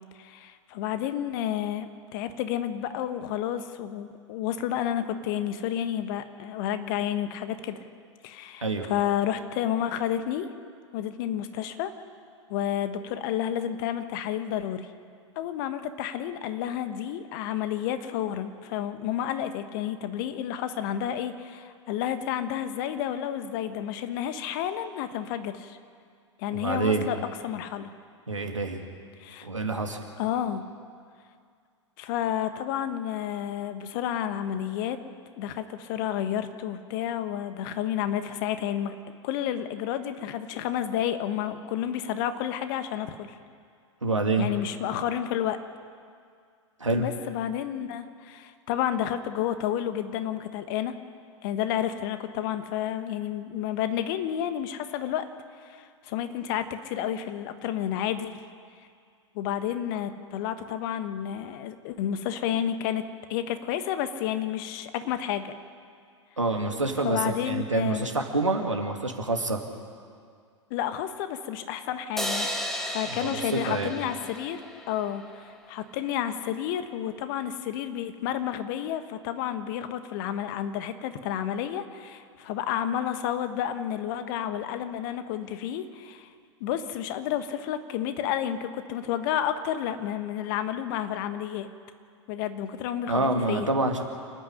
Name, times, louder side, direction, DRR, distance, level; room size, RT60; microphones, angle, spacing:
voice 1, 0.2-7.8 8.2-10.5 10.9-11.9 12.5-14.9 15.3-25.8 26.4-27.2 27.4-27.9 29.2-29.5 30.2-30.6 32.0-35.0 35.4-38.9 39.2-43.3 44.4-45.6 47.0-50.9 51.4-55.3 55.6-58.4 59.3-63.0 63.3-65.5 67.0-68.1 70.7-72.5 72.8-74.6 74.9-86.3 86.6-91.7 92.3-93.7, left 10 dB, 45° left, 10 dB, 1.4 m, -30 dB
voice 2, 8.6-8.9 26.5-27.1 28.3-28.8 29.4-30.0 44.0-44.5 46.8-47.1 66.4-69.6 73.2-73.9 93.1-94.0, right 3 dB, 85° right, 3 dB, 2.3 m, -27 dB
sound 1, 72.2-75.5, equal, ahead, 2.0 m, -34 dB
28.5 x 9.8 x 9.9 m, 2.2 s
figure-of-eight pair, 100°, 16 cm